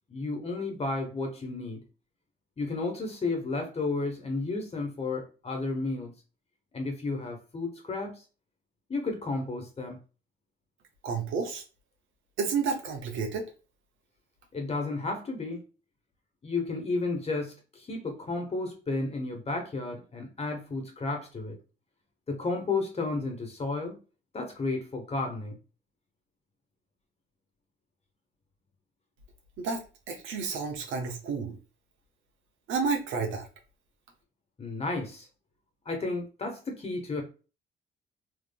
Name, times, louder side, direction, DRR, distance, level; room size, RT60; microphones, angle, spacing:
voice 1, 0.1-1.8 2.6-6.1 6.7-8.2 8.9-10.0 14.5-15.6 16.4-21.6 22.3-24.0 24.3-25.6 34.6-35.3 35.8-37.2, left 3 dB, 30° left, 1.2 m, -32 dB
voice 2, 11.0-11.6 12.4-13.5 29.6-29.8 30.1-31.6 32.7-33.5, right 5 dB, 80° right, 1.0 m, -30 dB
3.5 x 3.1 x 2.2 m
cardioid pair, 90°, 20 cm